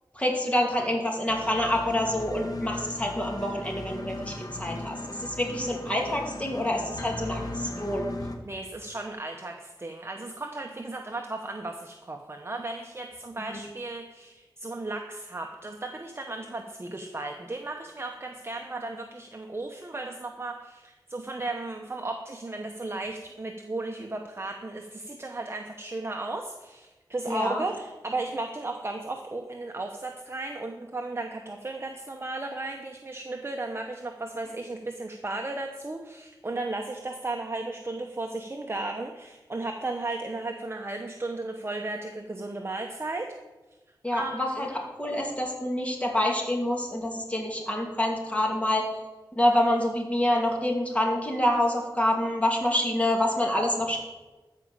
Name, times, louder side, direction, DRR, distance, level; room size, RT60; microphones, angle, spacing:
voice 1, 0.1-8.1 13.4-13.6 27.3-27.6 44.0-44.7 45.0-48.9 49.3-54.0, left 1 dB, 15° left, 0 dB, 2.5 m, -27 dB
sound 1, 1.3-8.4, left 2 dB, 50° left, 1.5 m, -37 dB
voice 2, 8.4-43.3 44.1-44.7, right 2 dB, 30° right, 3 dB, 0.9 m, -35 dB
14.0 x 5.1 x 7.2 m, 1.2 s
wide cardioid pair, 85°, 8 cm